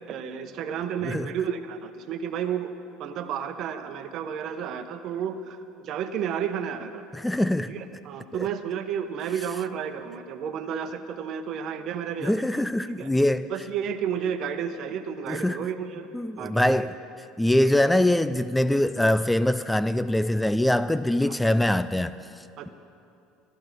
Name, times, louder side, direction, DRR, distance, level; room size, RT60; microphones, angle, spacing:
voice 1, 0.1-2.7 3.0-7.0 7.7-12.4 13.0-13.1 13.5-16.1 16.4-16.8 21.3-21.4 22.6-22.7, right 8 dB, 55° right, 1.0 m, -32 dB
voice 2, 1.0-1.3 7.1-7.7 8.3-8.5 12.2-13.5 15.3-15.6 16.1-17.0 17.4-22.7, left 1 dB, 5° left, 0.4 m, -23 dB
13.5 x 11.5 x 6.0 m
hypercardioid pair, 80°, 0 cm